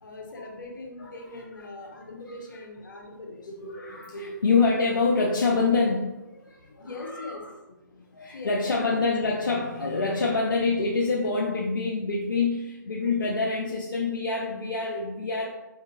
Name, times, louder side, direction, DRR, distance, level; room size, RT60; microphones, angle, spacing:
voice 1, 0.0-3.5 6.8-7.5 8.3-9.2 9.8-9.9 10.3-10.4, left 2 dB, 70° left, 0 dB, 1.2 m, -41 dB
voice 2, 1.0-1.4 1.9-2.2 3.5-7.5 7.9-15.5, left 4 dB, 85° left, -2 dB, 0.7 m, -26 dB
4.6 x 3.7 x 2.6 m, 0.98 s
hypercardioid pair, 140°, 11 cm